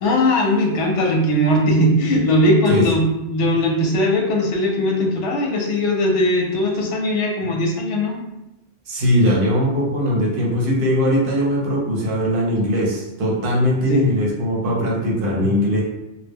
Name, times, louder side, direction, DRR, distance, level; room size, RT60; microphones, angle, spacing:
voice 1, 0.0-8.2 13.9-14.0, left 1 dB, 80° left, 0 dB, 0.9 m, -19 dB
voice 2, 8.9-15.8, equal, 55° right, -2 dB, 0.8 m, -20 dB
2.2 x 2.1 x 3.4 m, 0.91 s
omnidirectional pair, 1.2 m